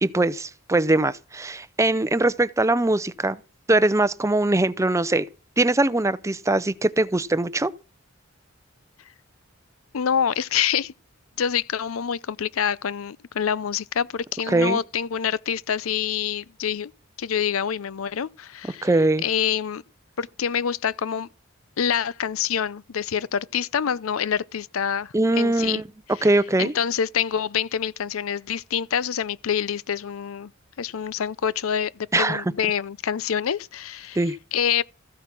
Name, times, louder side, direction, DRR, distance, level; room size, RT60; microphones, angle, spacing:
voice 1, 0.0-3.4 3.7-5.3 5.6-7.7 14.5-14.8 18.8-19.2 25.1-25.8 26.2-26.7 32.1-32.4 34.2-34.4, right 2 dB, 15° right, 0.5 m, -21 dB
voice 2, 9.9-10.9 11.4-16.9 17.2-18.9 19.2-19.8 20.2-21.3 21.8-25.8 26.2-26.3 26.6-30.5 30.8-34.2 34.5-34.8, left 8 dB, 85° left, 0.5 m, -26 dB
14.5 x 8.2 x 6.0 m
head